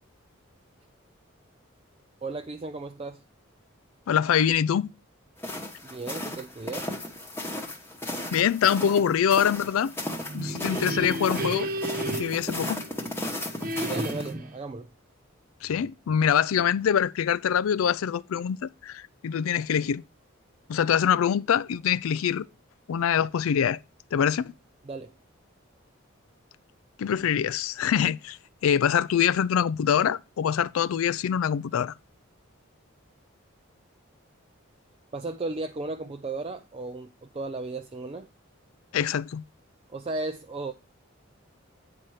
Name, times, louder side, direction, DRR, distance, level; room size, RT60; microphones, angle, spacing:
voice 1, 2.2-3.2 5.8-6.9 13.7-14.9 24.8-25.2 35.1-38.3 39.9-40.7, right 3 dB, 25° right, 0.4 m, -35 dB
voice 2, 4.1-4.9 8.3-9.9 10.3-11.7 12.2-12.8 15.6-20.0 20.7-22.5 22.9-23.8 24.1-24.5 27.0-28.4 28.6-31.9 38.9-39.4, left 8 dB, 80° left, 0.4 m, -24 dB
sound 1, 5.4-14.3, left 1 dB, 10° left, 1.0 m, -35 dB
sound 2, 10.1-13.2 13.6-14.6, right 1 dB, 40° right, 1.0 m, -33 dB
9.0 x 4.3 x 4.7 m
head